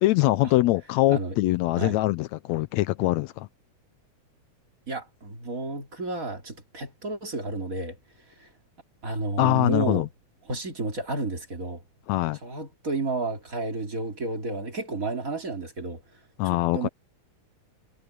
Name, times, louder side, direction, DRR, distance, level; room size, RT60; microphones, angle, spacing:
voice 1, 0.0-3.5 9.4-10.1 12.1-12.4 16.4-16.9, left 17 dB, 80° left, 1.8 m, -23 dB
voice 2, 4.9-8.0 8.4-8.5 9.0-10.1 10.5-11.8 12.4-16.0 16.4-16.9, right 2 dB, 30° right, 2.8 m, -31 dB
omnidirectional pair, 3.4 m